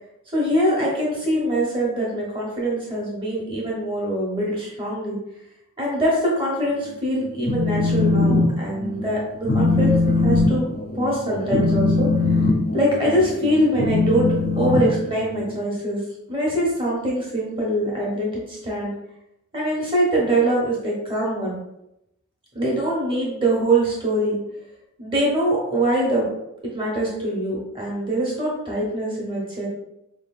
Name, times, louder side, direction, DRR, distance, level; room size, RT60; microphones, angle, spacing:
voice 1, 0.3-5.2 5.8-10.0 10.2-10.6 10.9-12.1 12.7-14.3 14.6-16.0 16.3-18.9 19.5-21.6 22.5-24.4 25.0-26.3 26.6-29.7, right 1 dB, 25° right, -4 dB, 1.3 m, -23 dB
Telephone, 7.3-8.5 8.8-9.1 9.4-15.6, left 3 dB, 40° left, 0.4 m, -20 dB
4.9 x 3.3 x 2.4 m, 0.83 s
head